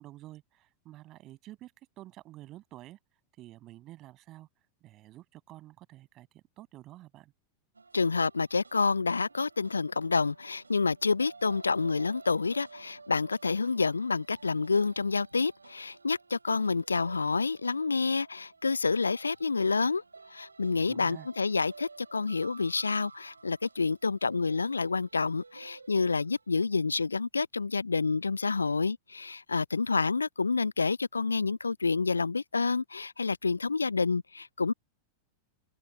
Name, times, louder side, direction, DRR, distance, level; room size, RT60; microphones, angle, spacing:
voice 1, 0.0-3.0 3.4-4.5 4.8-7.3 20.7-21.3, right 15 dB, 35° right, 7.2 m, -50 dB
sound 1, 7.7-26.5, right 4 dB, 80° right, 7.0 m, -53 dB
voice 2, 7.9-20.0 20.3-34.7, left 4 dB, 75° left, 0.4 m, -28 dB
open air
figure-of-eight pair, 90°, 0 cm